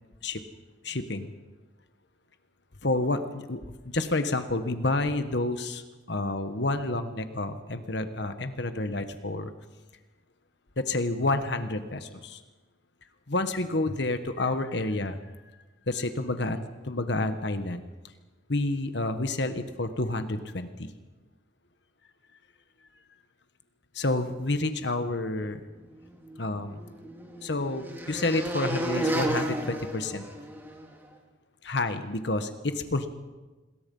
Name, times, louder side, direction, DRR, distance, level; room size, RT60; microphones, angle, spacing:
voice 1, 0.8-1.3 2.8-3.6 3.9-5.8 6.1-9.5 10.8-12.4 13.3-15.2 15.9-17.8 18.5-20.9 23.9-25.6 26.4-26.8 27.4-30.2 31.6-33.1, left 2 dB, 60° left, 8 dB, 1.4 m, -29 dB
sound 1, 26.2-30.9, right 1 dB, 10° right, 2.6 m, -32 dB
27.5 x 21.0 x 5.6 m, 1.2 s
head